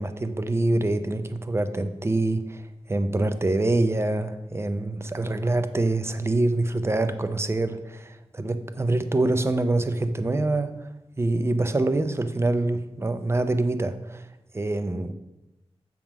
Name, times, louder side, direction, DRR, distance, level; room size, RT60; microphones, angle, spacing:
voice 1, 0.0-10.9 11.2-14.3 14.5-15.1, right 2 dB, 25° right, 10 dB, 0.5 m, -25 dB
7.3 x 3.6 x 5.9 m, 0.97 s
wide cardioid pair, 105°, 11 cm